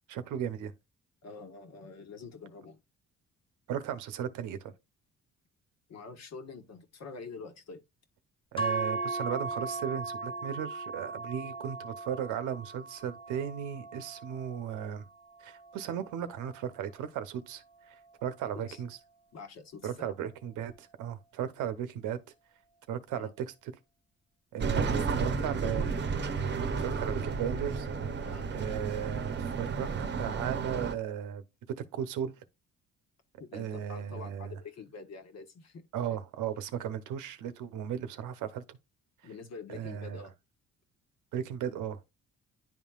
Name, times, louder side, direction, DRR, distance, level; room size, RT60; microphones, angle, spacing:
voice 1, 0.1-0.7 3.7-4.7 8.5-15.0 15.4-17.6 18.2-19.0 19.8-22.2 22.9-23.5 24.5-25.9 26.5-27.9 28.5-29.9 30.2-31.4 31.8-32.3 33.5-34.5 35.9-38.8 39.7-40.3 41.3-42.1, right 9 dB, 90° right, 0.9 m, -36 dB
voice 2, 1.2-2.8 5.9-7.8 18.7-18.8 19.3-20.1 23.2-23.3 24.8-25.9 28.2-28.5 33.4-35.8 39.2-40.3, left 4 dB, 60° left, 1.4 m, -46 dB
sound 1, 8.6-16.8, right 3 dB, 15° left, 1.3 m, -38 dB
sound 2, 24.6-30.9, right 5 dB, 35° right, 0.8 m, -32 dB
11.0 x 3.7 x 2.4 m
cardioid pair, 90°, 30 cm